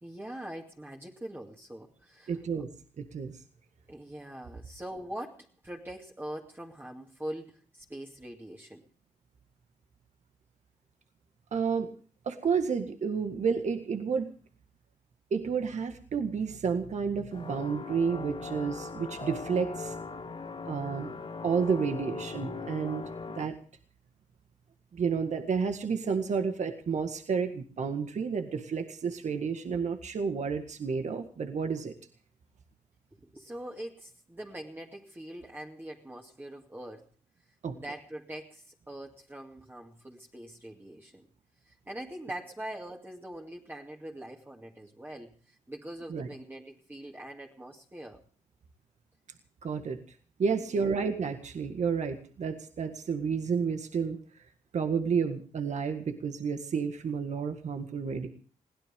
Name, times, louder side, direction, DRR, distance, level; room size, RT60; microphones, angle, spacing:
voice 1, 0.0-2.3 3.9-8.8 33.2-37.1 37.7-41.3 41.7-48.2 50.5-50.9, right 1 dB, 15° right, -1 dB, 2.3 m, -43 dB
voice 2, 2.3-2.7 3.0-3.4 11.5-11.9 12.2-14.3 15.3-19.9 20.6-21.1 21.4-23.0 23.3-23.6 24.9-31.9 37.6-37.7 46.1-46.3 49.6-50.0 50.4-54.2 54.7-58.3, right 6 dB, 60° right, 6 dB, 1.8 m, -30 dB
sound 1, 17.3-23.4, left 4 dB, 45° left, 3.1 m, -39 dB
22.0 x 16.5 x 3.7 m, 0.41 s
cardioid pair, 75°, 13 cm